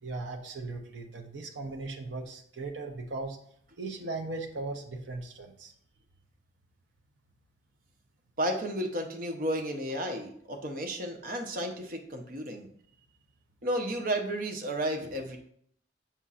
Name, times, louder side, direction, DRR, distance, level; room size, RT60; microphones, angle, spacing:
voice 1, 0.0-3.4 3.8-5.7, right 3 dB, 80° right, 3 dB, 0.7 m, -38 dB
voice 2, 8.4-12.7 13.6-15.4, right 1 dB, 50° right, 4 dB, 0.9 m, -32 dB
7.1 x 5.5 x 2.5 m, 0.66 s
head